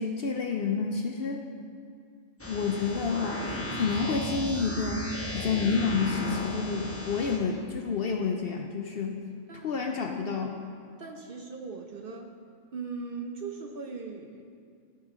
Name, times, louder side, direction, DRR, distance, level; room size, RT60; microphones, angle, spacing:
voice 1, 0.0-1.4 2.5-5.1 5.3-9.2 9.6-10.5, left 5 dB, 60° left, 3 dB, 0.6 m, -29 dB
sound 1, 2.4-7.4, left 1 dB, 10° left, 0.9 m, -35 dB
voice 2, 11.0-12.3 12.7-14.5, right 4 dB, 55° right, 3 dB, 0.7 m, -39 dB
14.0 x 5.3 x 3.6 m, 2.2 s
omnidirectional pair, 1.4 m